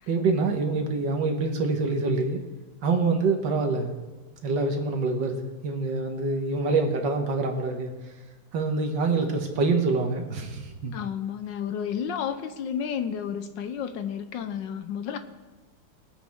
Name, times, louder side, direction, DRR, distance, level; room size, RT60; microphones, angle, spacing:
voice 1, 0.1-2.4 2.8-3.9 4.4-7.9 8.5-10.9, right 3 dB, 65° right, 4 dB, 1.8 m, -26 dB
voice 2, 10.9-15.2, left 8 dB, 75° left, 10 dB, 1.2 m, -31 dB
21.5 x 8.1 x 3.5 m, 1.2 s
omnidirectional pair, 2.2 m